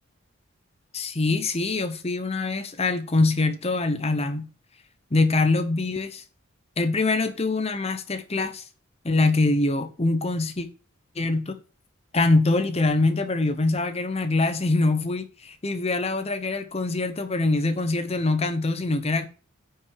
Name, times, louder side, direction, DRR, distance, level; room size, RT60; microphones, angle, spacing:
voice 1, 0.9-4.5 5.1-6.2 6.8-8.6 9.0-10.7 11.2-11.6 12.1-19.3, left 2 dB, 30° left, 0.8 m, -24 dB
9.8 x 5.8 x 4.7 m
head